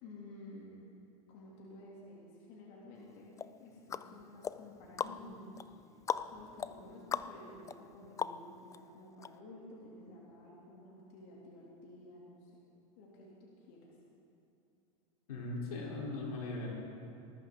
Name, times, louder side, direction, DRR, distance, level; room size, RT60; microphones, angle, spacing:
voice 1, 0.0-0.9 1.3-5.6 6.3-12.7 13.0-13.9, left 1 dB, 60° left, -4 dB, 3.0 m, -52 dB
sound 1, 3.4-8.8 9.2-9.3, left 7 dB, 15° left, 0.3 m, -40 dB
voice 2, 15.3-16.7, left 2 dB, 90° left, -3 dB, 3.8 m, -39 dB
20.0 x 13.5 x 3.9 m, 2.7 s
hypercardioid pair, 110°, 18 cm